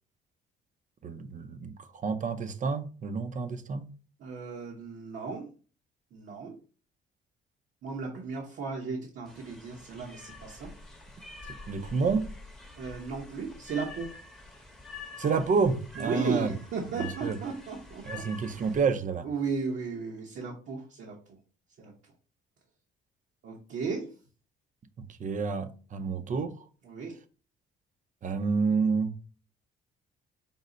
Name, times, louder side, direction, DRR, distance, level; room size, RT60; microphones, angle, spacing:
voice 1, 1.0-3.9 11.7-12.3 15.2-16.5 17.0-17.4 18.1-19.3 25.2-26.6 28.2-29.1, right 5 dB, 40° right, 0.5 m, -29 dB
voice 2, 4.2-5.5 6.1-6.5 7.8-10.7 12.8-14.1 16.0-18.2 18.5-18.7 19.2-21.1 21.8-21.9 23.4-24.0 26.8-27.1, right 5 dB, 70° right, 0.9 m, -35 dB
sound 1, 9.3-18.8, left 3 dB, 5° left, 0.8 m, -46 dB
5.3 x 2.0 x 3.8 m
cardioid pair, 90°, 20 cm